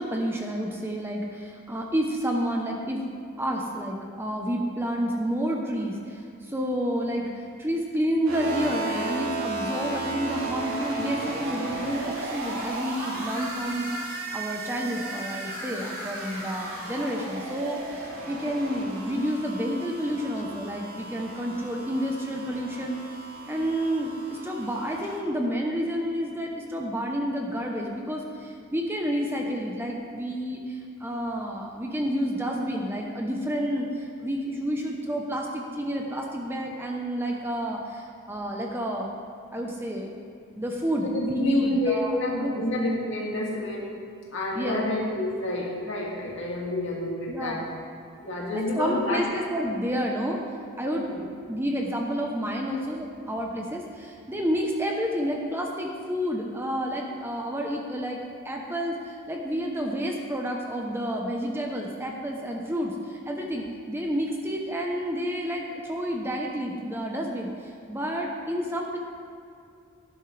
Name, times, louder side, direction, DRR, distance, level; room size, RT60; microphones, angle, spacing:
voice 1, 0.0-3.1 3.4-23.0 23.5-39.1 39.5-40.1 40.6-42.6 44.5-44.8 47.3-47.7 48.5-50.4 50.8-51.2 51.5-69.0, equal, 10° right, 0 dB, 0.8 m, -30 dB
sound 1, 8.3-25.2, right 2 dB, 80° right, 3.0 m, -35 dB
voice 2, 41.0-43.9 44.3-47.6 48.2-49.2 51.0-51.2, left 1 dB, 55° left, -3 dB, 2.5 m, -29 dB
18.5 x 10.5 x 3.4 m, 2.4 s
head